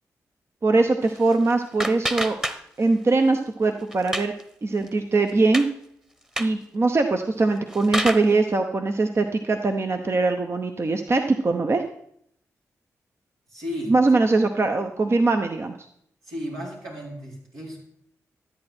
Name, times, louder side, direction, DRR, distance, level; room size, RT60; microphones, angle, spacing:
voice 1, 0.6-2.4 2.8-4.3 4.6-5.7 6.4-11.8 13.9-15.7, right 3 dB, 45° right, 6 dB, 0.8 m, -21 dB
sound 1, 1.0-3.0 3.3-4.4 4.8-4.9 5.3-5.7 6.2-6.6 7.4-8.4, equal, 10° right, 1.2 m, -30 dB
voice 2, 13.5-14.0 16.2-17.8, equal, 85° right, -5 dB, 4.6 m, -34 dB
13.0 x 8.8 x 4.4 m, 0.71 s
cardioid pair, 50°, 6 cm